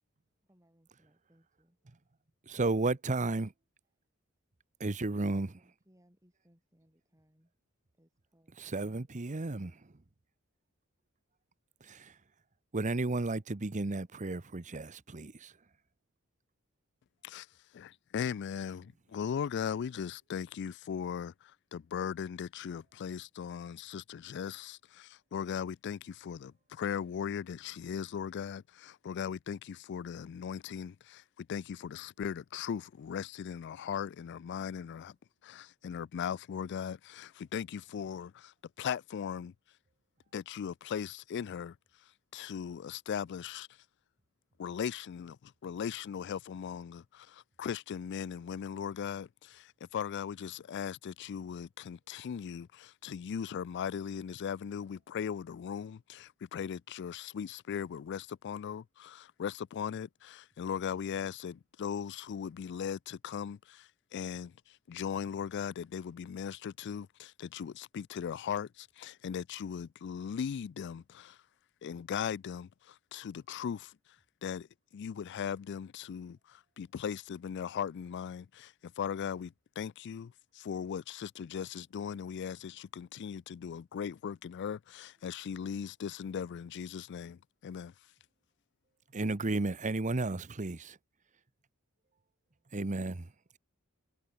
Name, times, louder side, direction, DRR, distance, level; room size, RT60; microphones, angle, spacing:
voice 1, 0.4-1.8 5.2-7.5 8.0-8.5 9.6-9.8, right 1 dB, 15° right, 7.8 m, -67 dB
voice 2, 2.5-3.5 4.8-5.5 8.6-9.7 11.8-12.2 12.7-15.5 89.1-91.0 92.7-93.6, right 2 dB, 35° right, 0.9 m, -33 dB
voice 3, 17.7-35.2 35.4-39.5 40.3-41.8 42.3-43.7 44.6-71.4 71.8-74.0 74.4-74.7 74.9-87.9, left 7 dB, 55° left, 0.3 m, -38 dB
head